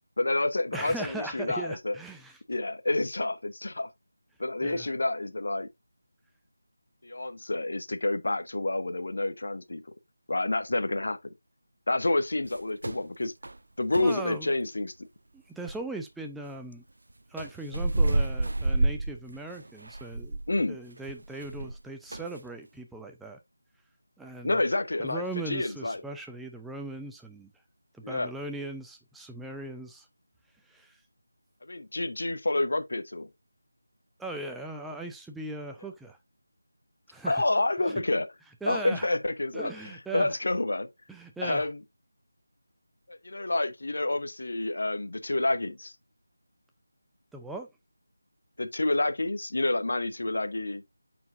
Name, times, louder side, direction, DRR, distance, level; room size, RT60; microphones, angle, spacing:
voice 1, 0.2-2.0 2.5-3.9 4.4-5.7 7.0-9.8 10.3-11.2 11.9-13.3 13.8-14.9 20.5-20.8 24.4-26.0 28.0-28.3 31.7-33.3 37.2-38.3 38.7-39.7 40.1-40.9 41.4-41.8 43.1-45.9 48.6-50.8, left 2 dB, 50° left, 0.8 m, -28 dB
voice 2, 0.7-2.4 4.6-4.9 14.0-14.5 15.3-16.8 17.3-23.4 24.2-24.6 25.0-27.5 27.9-30.1 30.7-31.0 34.2-36.2 37.1-37.4 37.9-38.0 38.6-39.1 39.5-40.4 41.1-41.7 47.3-47.7, right 2 dB, ahead, 0.4 m, -39 dB
sound 1, 12.4-13.0 13.4-13.6 13.9-14.2 15.7-15.8 17.4-21.8 22.1-22.4, right 2 dB, 55° right, 0.5 m, -29 dB
9.2 x 4.5 x 2.5 m
figure-of-eight pair, 160°, 0 cm